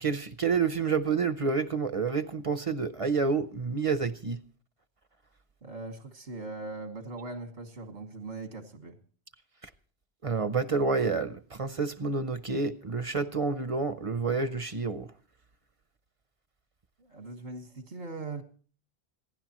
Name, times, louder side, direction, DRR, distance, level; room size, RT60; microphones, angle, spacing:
voice 1, 0.0-4.4 10.2-15.1, right 4 dB, 40° right, 0.6 m, -29 dB
voice 2, 5.6-9.0 17.0-18.4, right 3 dB, 80° right, 1.9 m, -40 dB
26.5 x 11.0 x 3.0 m
omnidirectional pair, 1.1 m